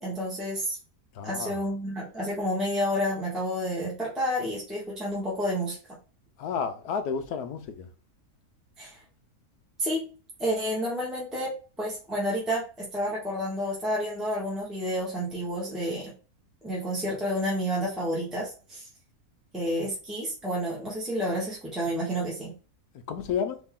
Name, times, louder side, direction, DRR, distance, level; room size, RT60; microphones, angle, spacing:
voice 1, 0.0-0.8 1.2-5.8 8.8-9.0 9.8-10.0 10.4-11.5 11.8-16.1 16.6-18.8 19.5-22.5, equal, ahead, 1.6 m, -30 dB
voice 2, 1.1-1.6 6.4-7.9 23.1-23.6, left 6 dB, 75° left, 1.3 m, -31 dB
4.1 x 3.3 x 3.7 m
omnidirectional pair, 1.7 m